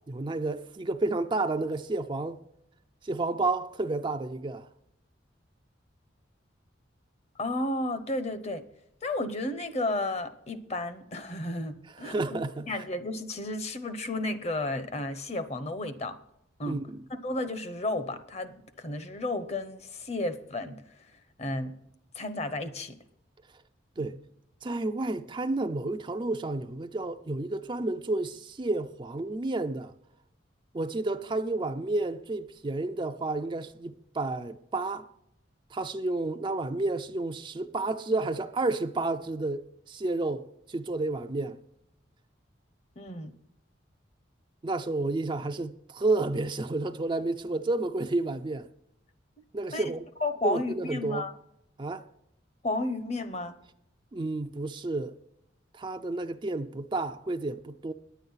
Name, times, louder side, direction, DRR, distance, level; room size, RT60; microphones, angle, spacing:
voice 1, 0.1-2.4 3.0-4.7 11.9-12.8 16.7-17.0 24.0-24.2 24.6-29.9 30.7-35.1 35.7-41.6 44.6-48.7 49.5-50.0 50.4-51.3 51.8-52.0 54.1-55.2 55.7-57.9, right 2 dB, 25° right, 0.4 m, -31 dB
voice 2, 7.4-8.6 9.0-16.2 16.6-16.8 17.2-20.8 21.4-21.7 22.1-23.0 24.0-24.1 43.0-43.3 49.7-49.8 50.2-51.3 52.6-53.6, left 2 dB, 35° left, 0.8 m, -32 dB
10.0 x 9.3 x 5.6 m
head